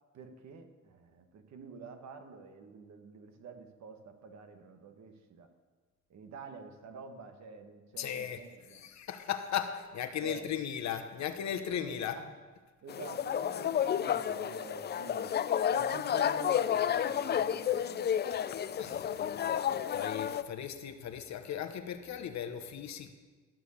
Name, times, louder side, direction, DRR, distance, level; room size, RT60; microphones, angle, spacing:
voice 1, 0.1-5.5 6.1-8.9 10.2-10.6 11.8-12.3 12.8-15.4 15.7-18.1 18.8-19.3, right 5 dB, 65° right, 6 dB, 1.3 m, -49 dB
voice 2, 8.0-8.4 8.7-12.3 18.7-19.6 19.9-23.1, left 9 dB, 65° left, 8 dB, 0.9 m, -37 dB
sound 1, 12.9-20.4, left 9 dB, 35° left, 0.4 m, -31 dB
13.5 x 4.7 x 6.9 m, 1.4 s
cardioid pair, 90°, 30 cm